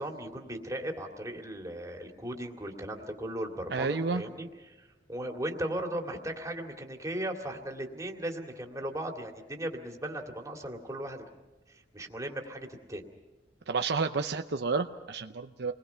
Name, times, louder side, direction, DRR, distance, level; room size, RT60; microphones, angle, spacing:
voice 1, 0.0-11.2 11.7-13.1, right 1 dB, 20° right, 2 dB, 2.3 m, -37 dB
voice 2, 3.7-4.2 13.7-15.7, right 4 dB, 65° right, 7 dB, 0.7 m, -30 dB
29.0 x 20.5 x 5.7 m, 1.1 s
head